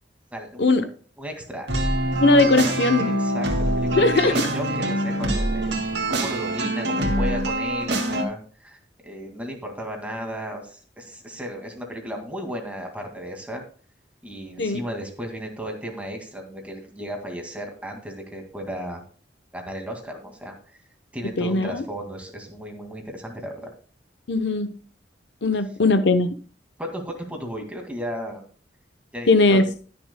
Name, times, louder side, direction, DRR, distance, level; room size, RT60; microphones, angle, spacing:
voice 1, 0.3-1.7 2.6-2.7 3.0-13.6 14.2-19.0 19.5-20.6 21.1-23.7 26.8-28.4 29.1-29.7, equal, 10° right, 2 dB, 2.1 m, -35 dB
sound 1, 1.7-8.2, right 1 dB, 70° right, 2.0 m, -24 dB
voice 2, 2.2-3.1 4.0-4.3 14.6-14.8 21.4-21.8 24.3-24.7 25.4-26.3 29.3-29.6, left 3 dB, 75° left, 10 dB, 0.8 m, -19 dB
20.0 x 6.8 x 2.2 m, 0.40 s
head